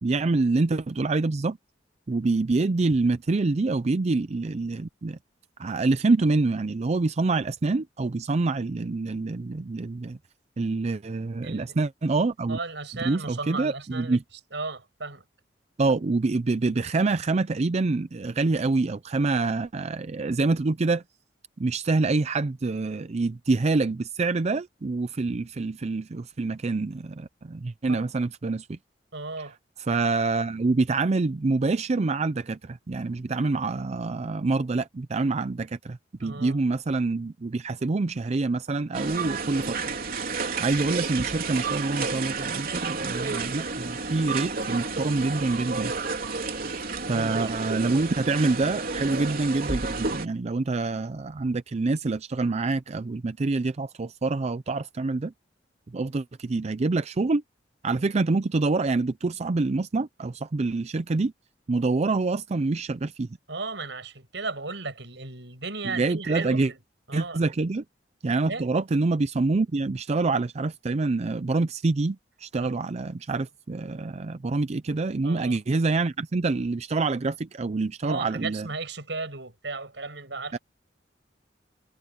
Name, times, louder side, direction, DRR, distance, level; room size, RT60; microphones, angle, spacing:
voice 1, 0.0-1.6 2.1-5.2 5.6-10.2 10.6-12.6 13.0-14.2 15.8-21.0 21.6-28.8 29.4-29.5 29.8-39.8 40.6-45.9 47.1-55.3 55.9-57.4 57.8-61.3 61.7-63.3 65.8-66.7 67.1-67.8 68.2-78.7 80.5-80.6, right 3 dB, 40° right, 0.5 m, -26 dB
voice 2, 11.4-11.8 12.5-14.2 14.5-15.2 27.9-28.0 29.1-29.6 36.2-36.6 47.1-47.5 63.5-66.8 67.1-67.4 68.4-68.6 72.6-72.7 75.2-75.6 78.0-80.6, right 3 dB, 75° right, 7.4 m, -35 dB
sound 1, 38.9-50.3, right 4 dB, 55° right, 3.5 m, -31 dB
head